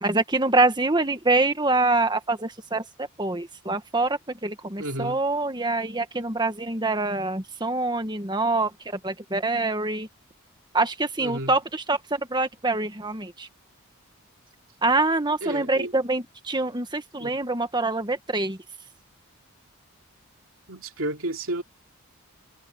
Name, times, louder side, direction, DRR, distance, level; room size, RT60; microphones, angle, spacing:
voice 1, 0.0-2.8 3.2-8.7 9.0-10.1 10.7-13.5 14.8-18.6, right 2 dB, 20° right, 1.6 m, -25 dB
voice 2, 4.8-5.2 11.2-11.6 15.4-15.9 17.2-17.4 20.7-21.6, right 1 dB, 65° right, 3.1 m, -31 dB
head